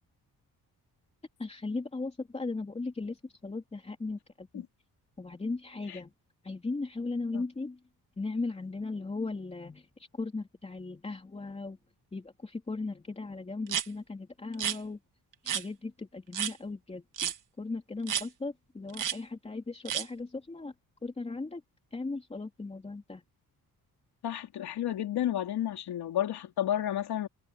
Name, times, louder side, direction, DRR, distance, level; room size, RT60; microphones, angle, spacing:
voice 1, 1.4-3.2 3.4-4.6 5.2-6.1 6.4-7.8 8.2-9.8 10.2-11.8 12.1-15.0 15.4-17.3 17.6-20.7 21.0-21.6 21.9-23.2, left 3 dB, 15° left, 3.2 m, -37 dB
sound 1, 13.7-13.9 14.5-14.8 15.5-15.6 16.3-16.5 17.2-17.4 18.1-18.3 18.9-19.2 19.9-20.1, right 9 dB, 55° right, 1.5 m, -31 dB
voice 2, 24.2-27.3, left 11 dB, 90° left, 3.4 m, -31 dB
wide cardioid pair, 180°, 37 cm